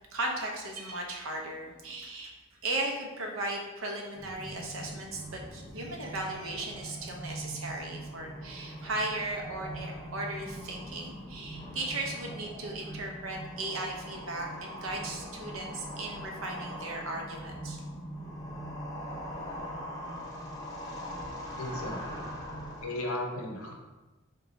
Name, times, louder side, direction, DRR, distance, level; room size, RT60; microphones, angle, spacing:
voice 1, 0.1-2.3 2.6-17.8, right 2 dB, 70° right, 1 dB, 0.6 m, -36 dB
sound 1, 4.1-22.9, equal, 15° left, 0.5 m, -41 dB
voice 2, 21.6-22.2 22.8-23.7, left 1 dB, 80° left, 0 dB, 0.6 m, -35 dB
2.9 x 2.2 x 3.8 m, 1.1 s
head